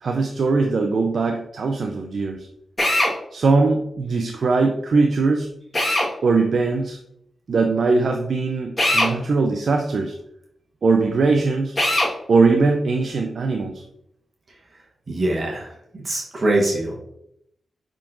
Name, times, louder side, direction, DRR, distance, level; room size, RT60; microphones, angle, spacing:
voice 1, 0.0-2.5 3.3-5.5 6.2-7.0 7.5-10.2 10.8-11.8 12.3-13.8, right 3 dB, 65° right, 4 dB, 0.4 m, -20 dB
Drill, 2.8-3.1 5.7-6.1 8.8-9.1 11.8-12.1, left 1 dB, 25° left, 1.4 m, -19 dB
voice 2, 15.1-16.9, right 1 dB, 45° right, -1 dB, 1.1 m, -23 dB
5.7 x 3.7 x 2.5 m, 0.78 s
cardioid pair, 60°, 0 cm